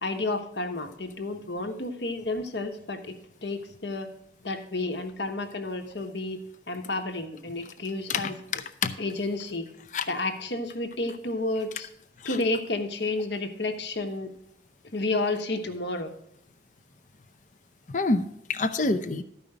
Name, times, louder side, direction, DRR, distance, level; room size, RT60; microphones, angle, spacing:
voice 1, 0.0-3.1 3.4-4.1 4.4-6.4 6.7-8.3 9.0-9.7 10.1-11.9 12.2-14.3 14.9-16.1, left 2 dB, 70° left, 5 dB, 1.3 m, -31 dB
voice 2, 17.9-19.2, left 3 dB, 40° left, 9 dB, 0.6 m, -27 dB
13.0 x 5.5 x 4.8 m, 0.79 s
head